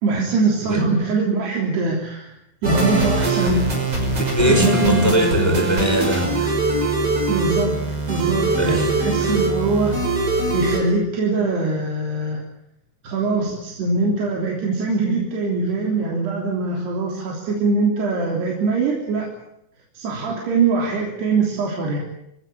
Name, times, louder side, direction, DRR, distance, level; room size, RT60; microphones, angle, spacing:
voice 1, 0.0-2.4 2.6-3.6 4.5-5.7 7.3-7.8 8.1-10.0 10.5-12.4 13.0-19.3 20.0-22.0, right 3 dB, 70° right, -1 dB, 5.3 m, -22 dB
sound 1, 2.6-10.8, right 2 dB, 30° right, 6.8 m, -22 dB
voice 2, 4.0-6.8 8.5-8.9 9.2-9.4, right 1 dB, 5° left, 3 dB, 5.1 m, -22 dB
26.0 x 17.5 x 8.8 m, 0.79 s
omnidirectional pair, 5.0 m